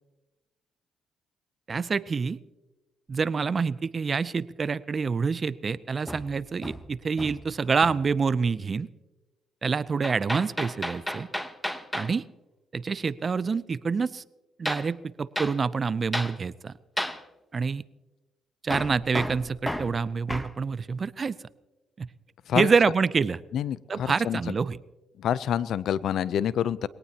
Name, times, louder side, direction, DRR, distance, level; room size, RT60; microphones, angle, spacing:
voice 1, 1.7-2.4 3.1-8.9 9.6-11.3 11.9-12.2 12.7-14.2 14.6-16.7 17.5-17.8 18.6-21.4 22.0-22.1 22.6-23.4 23.9-24.8, right 5 dB, 40° right, 18 dB, 0.5 m, -27 dB
Hammer, 6.1-7.5 7.8-8.1 10.0-12.2 14.7-14.9 15.4-15.6 16.1-16.4 17.0-17.2 18.7-20.6, left 1 dB, 5° left, 0.9 m, -33 dB
voice 2, 23.5-24.4 25.2-26.9, left 9 dB, 70° left, 18 dB, 0.5 m, -27 dB
22.0 x 18.0 x 2.9 m, 1.1 s
cardioid pair, 90°, 0 cm